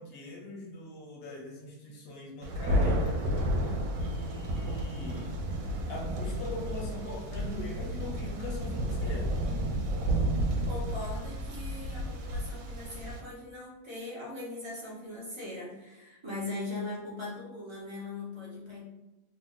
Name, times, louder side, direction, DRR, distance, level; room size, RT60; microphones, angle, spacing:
voice 1, 0.0-3.2 4.0-5.3 5.9-9.4, left 2 dB, 55° left, -2 dB, 0.7 m, -42 dB
Thunder, 2.4-13.2, equal, 70° right, 1.0 m, -31 dB
voice 2, 10.7-18.8, left 2 dB, 45° right, -6 dB, 0.3 m, -40 dB
2.8 x 2.0 x 3.6 m, 0.98 s
omnidirectional pair, 1.7 m